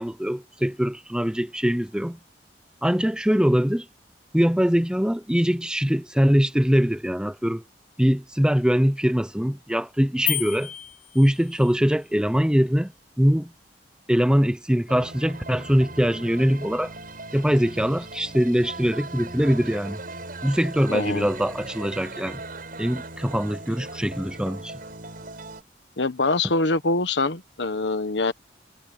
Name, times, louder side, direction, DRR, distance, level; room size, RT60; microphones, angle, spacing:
voice 1, 0.0-2.2 2.8-3.9 4.3-7.6 8.0-10.7 11.1-12.9 13.2-13.5 14.1-16.9 17.3-20.0 20.4-22.4 22.8-24.7, equal, 5° right, 0.8 m, -22 dB
sound 1, 10.3-11.8, left 14 dB, 45° left, 0.9 m, -31 dB
sound 2, 14.9-25.6, right 2 dB, 55° right, 7.6 m, -39 dB
voice 2, 20.9-21.3 26.0-28.3, left 3 dB, 90° left, 1.3 m, -24 dB
head